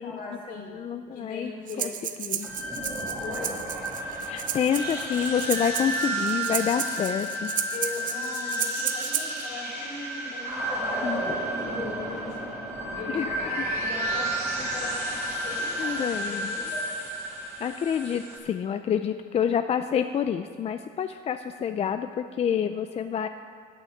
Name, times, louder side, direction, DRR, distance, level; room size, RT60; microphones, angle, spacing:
voice 1, 0.0-0.8 1.1-2.0 3.2-3.6 7.7-12.5 12.9-16.9, left 3 dB, 70° left, -2 dB, 3.7 m, -39 dB
voice 2, 0.7-1.5 1.8-1.9 2.2-2.5 4.3-7.5 11.0-11.2 13.1-13.3 15.8-16.5 17.6-23.3, left 8 dB, 35° left, 9 dB, 0.4 m, -28 dB
Breathing, 1.7-9.5, right 9 dB, 50° right, 0.7 m, -33 dB
sound 1, 2.4-18.4, right 1 dB, 15° right, 3.0 m, -31 dB
9.1 x 8.5 x 7.8 m, 2.1 s
cardioid pair, 110°, 17 cm